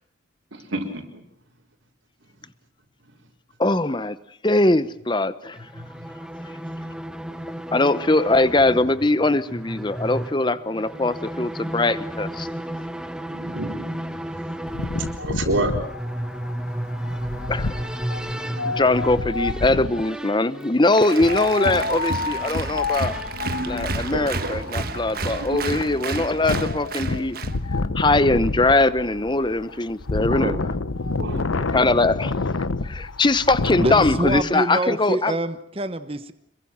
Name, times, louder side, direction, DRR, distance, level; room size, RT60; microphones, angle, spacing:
voice 1, 0.5-1.0 5.8-5.9 13.3-13.9 15.2-15.7 18.3-18.7 23.3-24.6 25.5-25.6 26.1-26.2 30.3-30.6 31.1-31.8, right 2 dB, 70° right, 4.3 m, -30 dB
voice 2, 3.6-4.2 4.4-5.6 7.7-12.5 17.5-17.8 18.6-23.2 23.7-27.4 27.9-30.6 31.7-35.3, left 2 dB, 25° left, 0.9 m, -21 dB
sound 1, 5.5-24.6, right 1 dB, 5° right, 1.0 m, -34 dB
Wind, 14.7-20.1 21.1-34.4, left 3 dB, 90° left, 0.9 m, -29 dB
Applause, 20.9-27.6, right 3 dB, 45° right, 1.4 m, -31 dB
voice 3, 33.8-36.3, right 1 dB, 30° right, 1.1 m, -26 dB
26.5 x 23.0 x 6.1 m
head